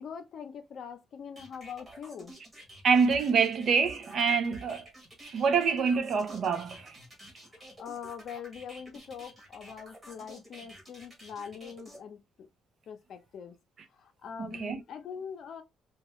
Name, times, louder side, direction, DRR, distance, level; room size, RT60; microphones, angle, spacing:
voice 1, 0.0-2.4 7.4-12.5 12.9-13.6 13.9-15.6, left 7 dB, 50° left, 0.6 m, -43 dB
sound 1, 1.4-12.0, equal, 15° right, 1.1 m, -50 dB
voice 2, 2.8-4.9 5.2-7.0 14.6-14.8, right 5 dB, 50° right, 0.5 m, -26 dB
2.9 x 2.3 x 2.9 m
cardioid pair, 155°, 0 cm